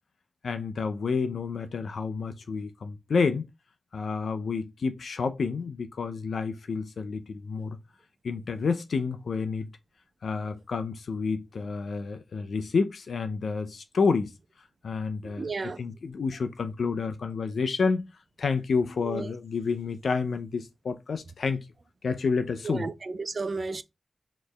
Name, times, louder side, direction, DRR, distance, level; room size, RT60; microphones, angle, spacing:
voice 1, 0.4-3.5 3.9-7.8 8.2-9.7 10.2-14.3 14.8-18.1 18.4-21.6 22.0-22.9, left 5 dB, 85° left, 0.6 m, -29 dB
voice 2, 15.4-15.8 19.0-19.3 22.6-22.9 23.2-23.8, right 3 dB, 55° right, 0.5 m, -32 dB
4.4 x 3.1 x 3.3 m
cardioid pair, 60°, 0 cm